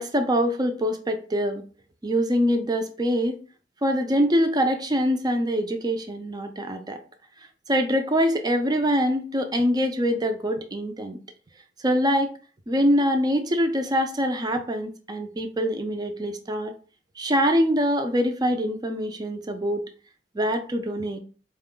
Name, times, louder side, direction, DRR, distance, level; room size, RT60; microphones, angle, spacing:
voice 1, 0.0-1.6 2.0-3.4 3.8-7.0 7.7-11.2 11.8-12.3 12.7-16.7 17.2-19.8 20.3-21.2, equal, 20° right, 6 dB, 0.5 m, -24 dB
4.2 x 2.2 x 3.7 m, 0.39 s
head